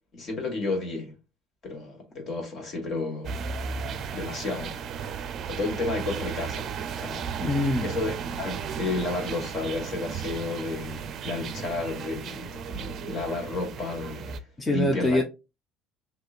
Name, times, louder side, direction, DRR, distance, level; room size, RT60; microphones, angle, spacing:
voice 1, 0.1-1.1 1.6-3.4 4.1-5.1 5.5-7.2 7.8-14.3 14.7-15.2, left 3 dB, 45° left, 1.8 m, -32 dB
sound 1, 3.2-14.4, right 6 dB, 50° right, 0.5 m, -35 dB
voice 2, 7.4-7.9 14.6-15.2, left 1 dB, 15° left, 0.7 m, -24 dB
6.3 x 2.9 x 2.5 m
cardioid pair, 115°, 0 cm